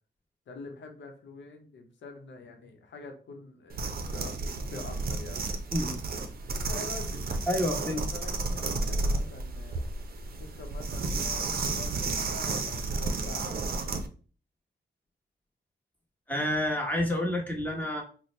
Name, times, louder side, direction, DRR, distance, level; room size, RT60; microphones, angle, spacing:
voice 1, 0.5-5.4 6.5-9.8 10.4-14.0, left 3 dB, 80° left, 4 dB, 0.8 m, -46 dB
sound 1, 3.7-14.1, right 3 dB, 55° right, 0.6 m, -32 dB
voice 2, 5.7-6.0 7.5-8.0 16.3-18.0, left 1 dB, 10° left, 0 dB, 1.2 m, -29 dB
4.0 x 2.2 x 3.2 m, 0.39 s
cardioid pair, 65°, 19 cm